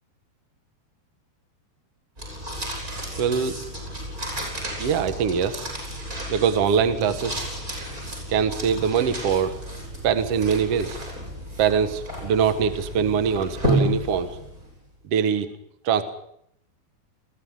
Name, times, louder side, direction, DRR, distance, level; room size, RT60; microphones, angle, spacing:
sound 1, 2.2-14.7, equal, 20° right, 8.2 m, -32 dB
voice 1, 3.2-3.6 4.8-5.7 6.3-7.4 8.3-9.6 10.0-11.0 11.6-14.3 15.1-15.5 15.8-16.0, right 7 dB, 60° right, 11 dB, 1.7 m, -23 dB
22.5 x 15.5 x 9.7 m, 0.72 s
omnidirectional pair, 4.7 m